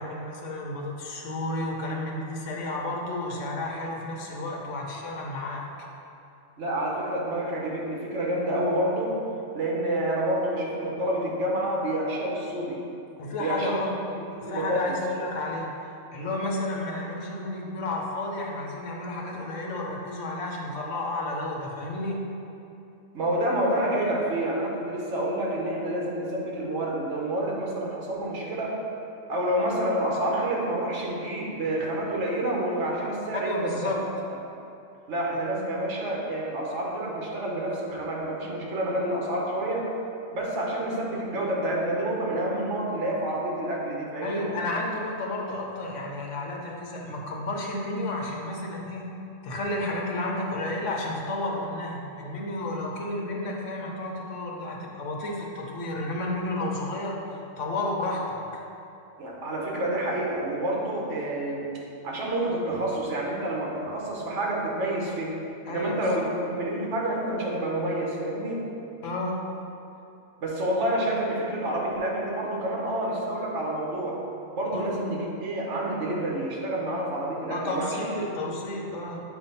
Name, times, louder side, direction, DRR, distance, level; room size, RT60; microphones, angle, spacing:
voice 1, 0.0-5.7 13.2-13.9 14.4-15.7 16.1-22.2 33.4-34.1 35.3-35.4 44.2-49.0 49.4-57.2 57.6-58.6 65.7-66.2 69.0-69.4 74.7-74.8 77.5-79.2, left 2 dB, 70° left, -1 dB, 1.2 m, -32 dB
voice 2, 6.6-9.3 9.5-12.8 13.4-13.8 14.3-15.0 23.1-28.8 29.3-33.7 35.1-39.9 40.3-44.5 59.2-61.8 62.0-65.4 65.7-68.7 70.4-74.2 74.6-78.1 78.5-78.6, right 1 dB, 65° right, -2 dB, 1.3 m, -28 dB
8.0 x 2.7 x 5.4 m, 2.8 s
omnidirectional pair, 1.3 m